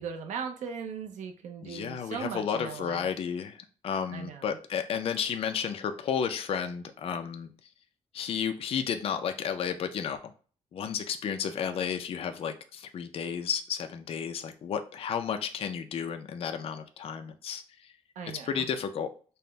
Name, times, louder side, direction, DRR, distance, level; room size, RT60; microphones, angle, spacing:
voice 1, 0.0-3.1 4.1-4.5 18.2-18.7, right 6 dB, 80° right, 5 dB, 0.5 m, -38 dB
voice 2, 1.6-3.6 3.8-7.5 8.1-10.3 10.7-17.9 18.4-19.1, left 7 dB, 50° left, 7 dB, 0.4 m, -32 dB
5.5 x 2.0 x 3.3 m, 0.40 s
wide cardioid pair, 160°, 12 cm